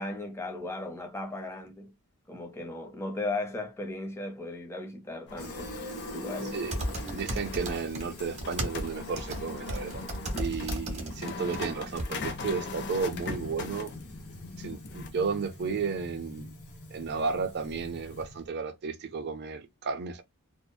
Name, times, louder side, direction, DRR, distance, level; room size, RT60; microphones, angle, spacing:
voice 1, 0.0-1.9 2.3-5.7 6.1-6.6, left 2 dB, 10° left, 0.6 m, -36 dB
sound 1, 5.3-15.1, left 3 dB, 55° left, 0.5 m, -40 dB
Fill (with liquid), 5.4-18.5, left 1 dB, 90° left, 1.0 m, -45 dB
voice 2, 6.4-6.8 7.1-10.0 10.3-13.9 14.6-16.5 16.9-20.2, right 5 dB, 50° right, 0.5 m, -33 dB
sound 2, 6.7-8.0 8.3-11.7 12.0-12.1, right 1 dB, 35° right, 0.8 m, -34 dB
2.7 x 2.0 x 2.2 m
head